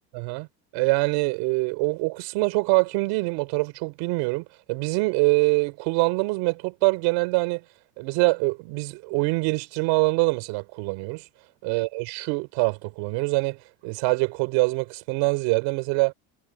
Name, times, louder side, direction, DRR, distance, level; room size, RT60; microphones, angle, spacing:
voice 1, 0.1-0.5 0.7-7.6 8.0-11.2 11.6-16.1, right 26 dB, 85° right, 4.1 m, -24 dB
cardioid pair, 145°, 43 cm